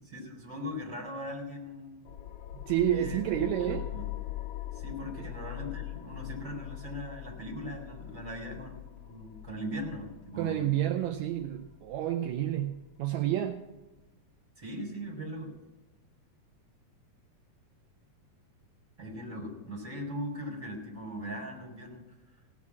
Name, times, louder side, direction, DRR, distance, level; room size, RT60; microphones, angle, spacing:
voice 1, 0.0-2.0 2.9-3.3 3.6-4.0 4.7-10.7 14.6-15.5 19.0-22.2, equal, 25° right, 5.0 m, -40 dB
sound 1, 2.0-13.1, left 14 dB, 75° left, 1.4 m, -42 dB
voice 2, 2.7-3.9 5.2-5.3 10.4-13.6, right 12 dB, 80° right, 1.9 m, -30 dB
17.5 x 6.3 x 8.5 m
omnidirectional pair, 3.4 m